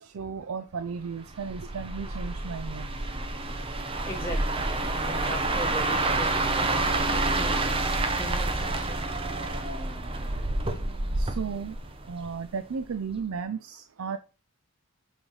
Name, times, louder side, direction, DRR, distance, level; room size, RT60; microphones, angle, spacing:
voice 1, 0.0-2.9 11.2-11.8 12.1-14.2, right 5 dB, 75° right, 10 dB, 0.4 m, -34 dB
sound 1, 1.4-12.5 12.8-13.1, right 2 dB, 25° right, 0.7 m, -28 dB
voice 2, 3.8-7.7 8.2-9.2, equal, 10° left, -3 dB, 2.6 m, -40 dB
8.0 x 3.3 x 5.4 m, 0.35 s
head